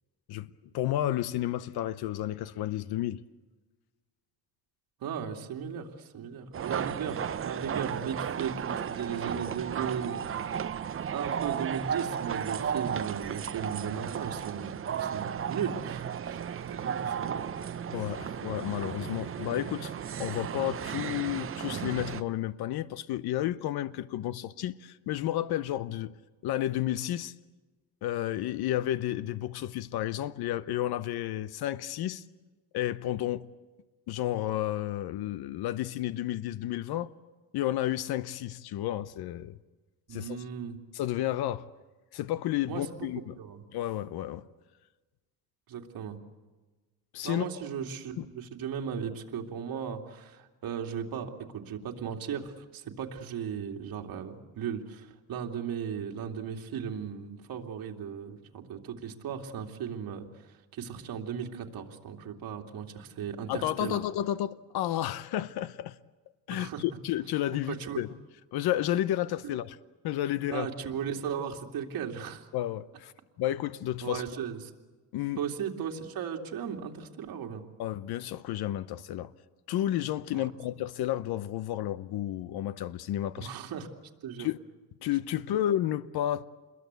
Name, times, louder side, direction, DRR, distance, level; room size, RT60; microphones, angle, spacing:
voice 1, 0.3-3.2 17.9-19.9 20.2-26.1 26.4-27.3 28.0-32.2 32.7-33.5 34.1-37.1 37.5-39.6 40.1-40.4 40.9-41.7 42.1-43.3 43.7-44.5 47.1-47.4 48.2-48.3 63.5-66.0 66.5-68.1 68.5-69.8 70.0-70.7 72.5-73.1 73.4-74.2 75.1-75.4 77.8-79.3 79.7-83.5 84.4-84.6 85.0-86.5, left 13 dB, 90° left, 0.9 m, -31 dB
voice 2, 5.0-10.7 11.1-16.4 16.7-17.4 40.1-40.8 42.7-43.1 43.4-43.6 45.7-46.2 47.2-64.0 66.5-66.8 67.7-68.0 70.5-72.5 74.0-74.6 75.4-77.6 80.3-80.5 83.4-83.9 84.2-84.5 85.5-85.6, right 7 dB, 65° right, 2.8 m, -36 dB
sound 1, 6.5-22.2, right 8 dB, 35° right, 0.8 m, -34 dB
28.5 x 22.0 x 8.2 m
cardioid pair, 135°, 37 cm